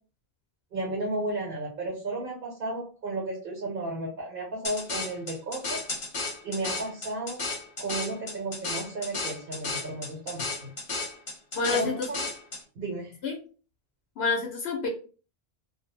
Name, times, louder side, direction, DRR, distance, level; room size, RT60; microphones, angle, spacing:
voice 1, 0.7-5.8 6.4-7.4 7.8-10.7 11.7-12.2 12.7-13.2, right 2 dB, 60° right, -2 dB, 1.0 m, -33 dB
sound 1, 4.6-12.6, left 3 dB, 50° left, 0.9 m, -34 dB
voice 2, 11.6-12.1 13.2-13.4 14.2-14.9, left 4 dB, 80° left, 1 dB, 0.8 m, -28 dB
2.3 x 2.0 x 3.1 m, 0.38 s
omnidirectional pair, 1.0 m